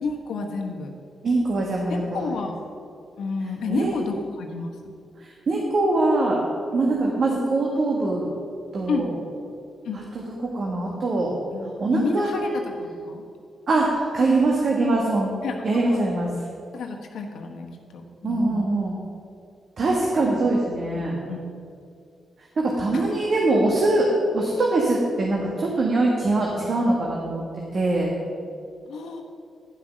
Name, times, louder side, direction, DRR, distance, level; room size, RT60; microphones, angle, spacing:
voice 1, 0.0-0.9 1.9-2.6 3.2-4.9 8.9-9.1 9.8-10.0 11.5-13.2 15.4-16.0 16.7-17.7 17.9-18.6 20.9-21.7 22.9-23.1 28.9-29.2, left 4 dB, 80° left, 3 dB, 1.1 m, -30 dB
voice 2, 1.2-2.4 3.7-3.9 5.5-6.4 6.7-8.3 8.7-9.1 9.9-10.0 10.5-11.3 11.8-12.5 13.7-15.3 15.6-16.3 18.2-19.0 19.8-21.2 22.6-24.1 24.3-27.4 27.7-28.1, right 2 dB, 55° right, -2 dB, 1.5 m, -22 dB
10.5 x 5.8 x 6.2 m, 2.4 s
cardioid pair, 65°, 0 cm